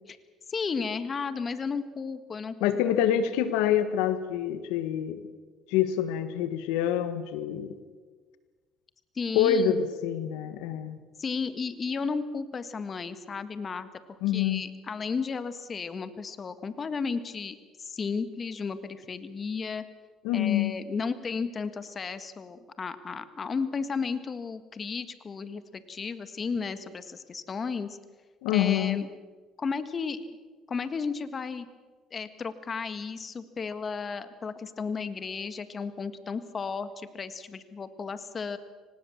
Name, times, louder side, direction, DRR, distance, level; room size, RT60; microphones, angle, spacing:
voice 1, 0.5-2.5 9.1-9.9 11.2-19.8 20.3-28.0 28.5-29.1 29.6-30.4 30.7-31.7 32.1-38.6, left 5 dB, 35° left, 12 dB, 1.7 m, -34 dB
voice 2, 2.6-5.2 5.7-7.8 9.3-11.0 14.2-14.6 20.2-20.7 28.4-29.0, left 9 dB, 90° left, 11 dB, 1.4 m, -26 dB
24.5 x 19.5 x 7.3 m, 1.4 s
supercardioid pair, 90°, 0 cm